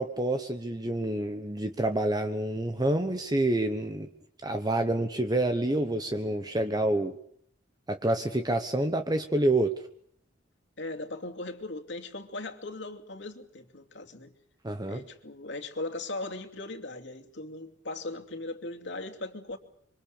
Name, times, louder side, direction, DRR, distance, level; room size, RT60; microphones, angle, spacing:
voice 1, 0.0-4.1 4.4-7.1 7.9-9.7 14.6-15.0, right 1 dB, 20° right, 1.2 m, -28 dB
voice 2, 10.8-14.3 14.9-19.6, left 2 dB, 70° left, 2.6 m, -38 dB
26.5 x 24.5 x 6.7 m
head